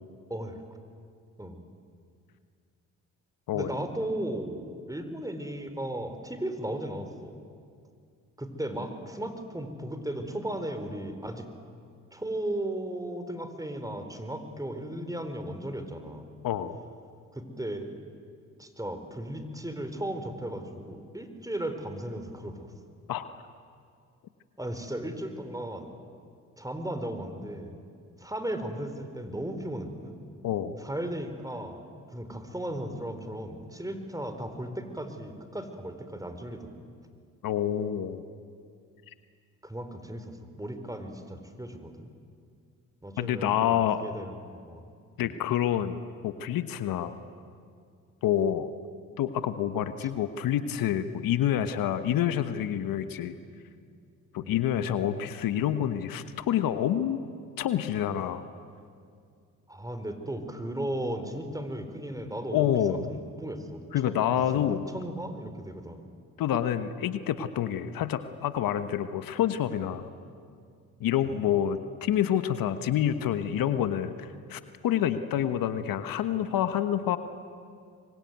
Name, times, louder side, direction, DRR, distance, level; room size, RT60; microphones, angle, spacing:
voice 1, 3.5-7.3 8.4-11.5 12.1-16.3 17.3-18.0 18.6-22.7 24.6-25.9 26.6-27.8 28.2-30.2 30.8-36.7 39.6-42.1 43.0-44.8 45.2-45.4 50.0-50.1 52.9-53.1 54.4-54.6 59.7-64.2 64.5-66.1 71.2-71.4, right 1 dB, 10° right, 8 dB, 4.4 m, -36 dB
voice 2, 16.4-16.8 23.1-23.3 30.4-30.7 37.4-38.2 43.2-44.0 45.2-46.0 46.2-47.1 48.2-48.7 49.2-53.3 54.3-57.2 57.6-58.4 62.5-63.1 63.9-64.8 66.4-70.1 71.0-77.2, left 10 dB, 70° left, 10 dB, 1.3 m, -27 dB
26.0 x 23.0 x 9.5 m, 2.3 s
hypercardioid pair, 55°, 35 cm